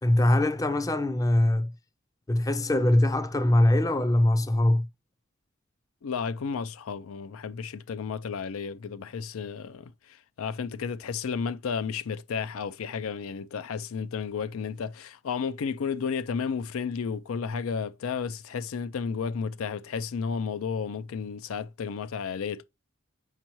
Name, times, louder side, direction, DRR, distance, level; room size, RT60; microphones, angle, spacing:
voice 1, 0.0-1.7 2.3-4.9, left 1 dB, 15° left, 0.4 m, -22 dB
voice 2, 6.0-22.6, left 6 dB, 85° left, 0.4 m, -32 dB
7.4 x 5.3 x 3.0 m
head